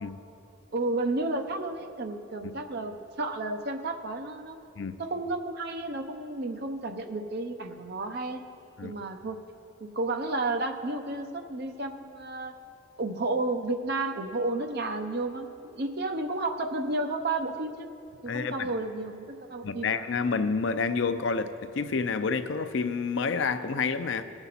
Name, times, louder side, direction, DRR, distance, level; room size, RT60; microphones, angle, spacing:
voice 1, 0.7-4.6 5.0-8.4 8.8-9.4 9.8-12.5 13.0-17.9 18.2-19.9, right 2 dB, 50° right, 6 dB, 0.7 m, -32 dB
voice 2, 18.3-18.7 19.6-24.2, left 5 dB, 65° left, 10 dB, 0.5 m, -29 dB
18.5 x 7.0 x 4.1 m, 2.7 s
head